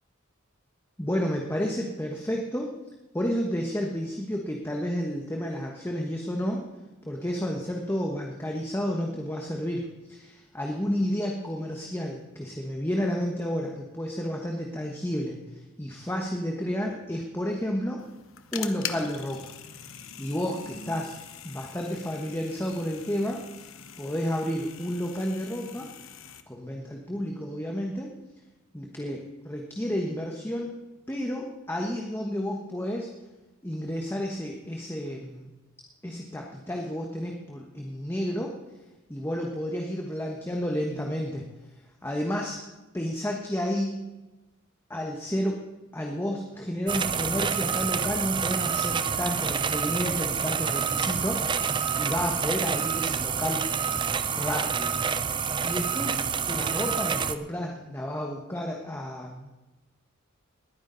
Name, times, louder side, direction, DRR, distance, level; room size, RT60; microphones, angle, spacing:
voice 1, 1.0-2.7 3.1-6.7 7.0-18.0 18.5-19.5 20.2-21.1 21.4-23.7 24.0-25.9 26.5-28.1 28.7-30.7 31.1-33.1 33.6-35.5 36.0-38.5 39.1-41.5 42.0-42.6 42.9-44.0 44.9-45.6 45.9-53.6 54.3-54.9 55.6-56.2 56.5-59.7, equal, 10° left, 0 dB, 1.2 m, -31 dB
sound 1, 18.0-26.4, left 8 dB, 70° left, 1.0 m, -42 dB
sound 2, 46.9-57.3, right 6 dB, 20° right, 0.5 m, -28 dB
20.0 x 9.9 x 4.0 m, 1.1 s
head